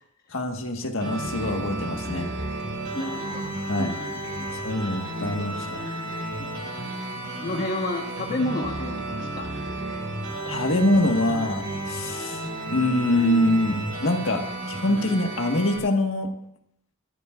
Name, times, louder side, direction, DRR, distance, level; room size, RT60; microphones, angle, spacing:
voice 1, 0.3-2.3 3.7-4.0 4.6-5.8 10.4-12.4 12.7-16.3, left 1 dB, 65° left, 3 dB, 1.7 m, -24 dB
sound 1, 1.0-15.8, right 1 dB, 65° right, 5.4 m, -33 dB
voice 2, 2.9-3.5 3.8-4.5 6.4-6.5 7.4-9.5, left 2 dB, 45° left, 1 dB, 1.4 m, -31 dB
24.0 x 14.0 x 2.5 m, 0.72 s
head